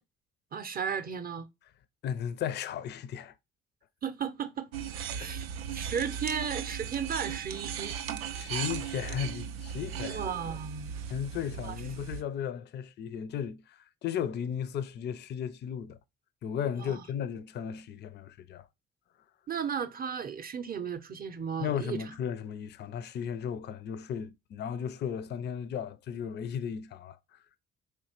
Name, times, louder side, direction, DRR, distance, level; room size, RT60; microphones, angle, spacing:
voice 1, 0.5-1.5 4.0-4.7 5.2-5.5 5.7-7.9 10.1-11.0 11.6-11.7 16.7-17.1 19.5-22.0, right 7 dB, 30° right, 0.6 m, -35 dB
voice 2, 2.0-3.3 5.2-5.3 8.3-10.2 11.1-16.0 16.4-18.7 21.6-27.2, left 8 dB, 35° left, 0.4 m, -35 dB
sound 1, 4.7-12.2, right 8 dB, 80° right, 0.4 m, -37 dB
4.3 x 3.2 x 2.8 m
hypercardioid pair, 45°, 30 cm